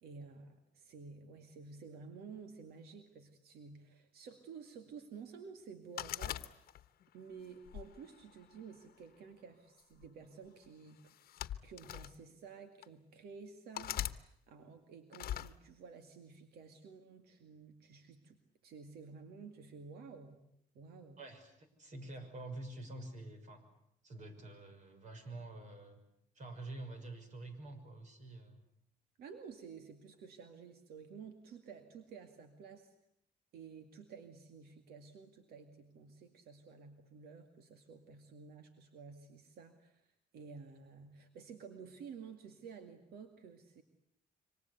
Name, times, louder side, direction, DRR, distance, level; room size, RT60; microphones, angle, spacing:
voice 1, 0.0-6.4 7.1-11.1 11.6-20.4 20.7-21.2 29.2-32.9 33.5-43.8, right 5 dB, 85° right, 8 dB, 2.3 m, -52 dB
sound 1, 6.0-7.0 7.7-8.8 9.8-10.1 11.1-12.1 12.8-12.9 13.7-14.2 15.1-15.5, left 12 dB, 75° left, 1.0 m, -41 dB
voice 2, 21.2-23.7 24.0-26.0 26.3-28.6, right 2 dB, 50° right, 7 dB, 6.3 m, -48 dB
27.0 x 25.0 x 8.3 m, 0.73 s
cardioid pair, 115°, 16 cm